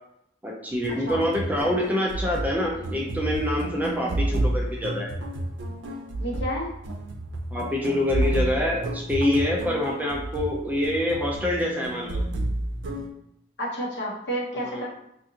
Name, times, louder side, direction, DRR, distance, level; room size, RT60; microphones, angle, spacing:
voice 1, 0.4-5.1 7.5-12.2 14.6-14.8, left 1 dB, 10° right, -2 dB, 0.4 m, -26 dB
sound 1, 0.7-13.1, right 1 dB, 80° right, 0.5 m, -30 dB
voice 2, 6.2-6.7 13.6-14.8, equal, 65° left, -4 dB, 1.0 m, -30 dB
3.7 x 2.5 x 2.7 m, 0.78 s
head